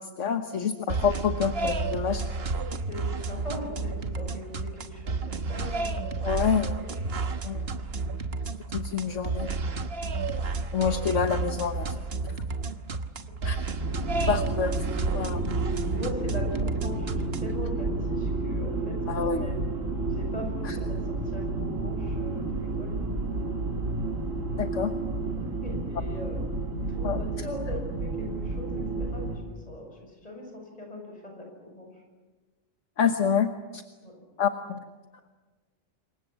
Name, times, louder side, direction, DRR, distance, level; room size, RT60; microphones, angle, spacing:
voice 1, 0.0-2.5 6.2-6.8 7.4-7.6 8.7-9.5 10.7-12.0 13.4-13.6 14.3-14.9 15.1-15.4 19.1-19.5 20.6-20.8 24.6-24.9 27.0-27.2 33.0-33.8 34.4-34.8, left 7 dB, 65° left, 7 dB, 1.5 m, -27 dB
sound 1, 0.9-17.6, right 3 dB, 50° right, 1.4 m, -31 dB
voice 2, 2.9-6.3 6.8-7.0 15.9-19.6 20.1-23.0 25.4-26.4 26.8-32.0 34.0-34.1, left 1 dB, 30° left, 2 dB, 7.4 m, -40 dB
sound 2, 13.7-29.4, right 2 dB, 75° right, 2.8 m, -31 dB
27.5 x 24.0 x 7.5 m, 1.3 s
omnidirectional pair, 1.4 m